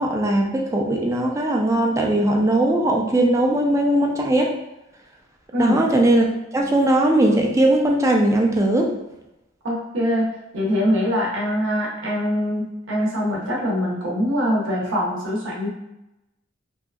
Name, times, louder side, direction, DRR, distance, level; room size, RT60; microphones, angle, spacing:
voice 1, 0.0-4.5 5.6-6.3 6.5-8.9, right 1 dB, 15° right, 0 dB, 0.4 m, -19 dB
voice 2, 9.6-10.3 10.5-15.7, equal, 80° right, -3 dB, 0.6 m, -23 dB
2.7 x 2.3 x 2.3 m, 0.93 s
head